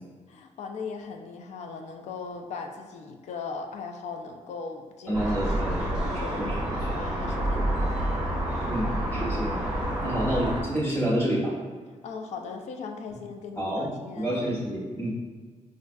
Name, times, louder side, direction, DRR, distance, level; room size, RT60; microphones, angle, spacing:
voice 1, 0.3-6.5 6.9-8.2 12.0-14.4, left 4 dB, 60° left, 4 dB, 0.4 m, -39 dB
voice 2, 5.1-6.0 6.4-6.9 8.7-9.6 10.0-11.5 13.6-13.9 14.1-15.2, equal, 20° left, -6 dB, 1.1 m, -29 dB
sound 1, 5.1-10.6, right 1 dB, 5° right, 0.8 m, -28 dB
5.1 x 2.4 x 2.2 m, 1.5 s
wide cardioid pair, 155°, 13 cm